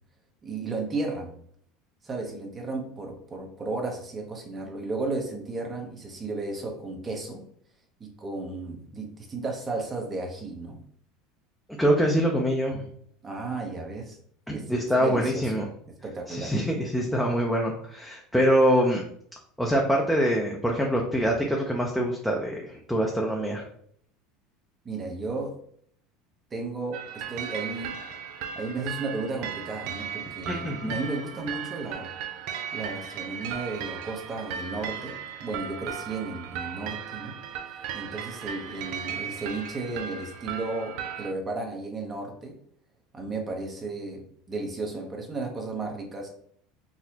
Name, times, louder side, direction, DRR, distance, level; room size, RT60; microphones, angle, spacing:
voice 1, 0.4-1.3 2.0-7.4 8.0-10.8 13.2-14.2 14.5-15.6 16.0-16.6 24.8-25.5 26.5-28.0 28.6-32.4 32.7-37.4 37.9-42.5 43.1-46.3, right 3 dB, 30° right, 2 dB, 0.8 m, -34 dB
voice 2, 11.8-12.9 14.5-15.7 16.3-19.1 19.6-23.7 30.5-31.0, equal, ahead, -2 dB, 0.6 m, -24 dB
sound 1, 26.9-41.3, right 8 dB, 65° right, 0.3 m, -36 dB
4.0 x 2.0 x 2.8 m, 0.65 s
hypercardioid pair, 90°, 0 cm